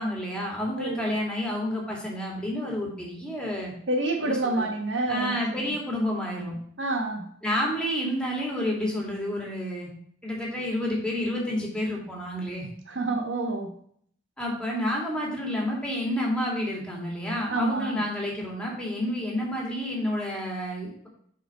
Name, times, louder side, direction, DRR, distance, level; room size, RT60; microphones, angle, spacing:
voice 1, 0.0-3.7 4.2-4.7 5.1-6.6 7.4-9.9 10.2-12.7 14.4-21.1, equal, 5° left, -2 dB, 2.4 m, -29 dB
voice 2, 3.9-5.7 6.8-7.3 12.9-13.7 17.5-18.0, right 2 dB, 80° right, 3 dB, 1.3 m, -28 dB
6.5 x 5.1 x 6.0 m, 0.63 s
head